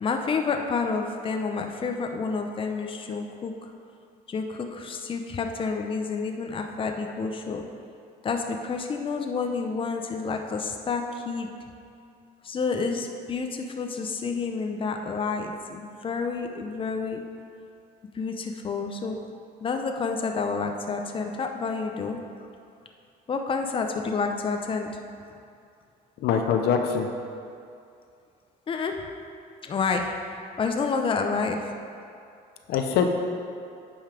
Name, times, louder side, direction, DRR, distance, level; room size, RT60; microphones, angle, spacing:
voice 1, 0.0-3.7 4.3-7.6 8.2-11.5 12.4-17.2 18.1-19.2 19.6-22.2 23.3-24.9 28.7-29.0 29.6-30.2 30.6-31.7, left 4 dB, 30° left, 4 dB, 0.7 m, -29 dB
voice 2, 26.2-27.1 32.7-33.2, left 6 dB, 75° left, 5 dB, 0.8 m, -23 dB
9.0 x 5.5 x 5.0 m, 2.4 s
cardioid pair, 110°, 17 cm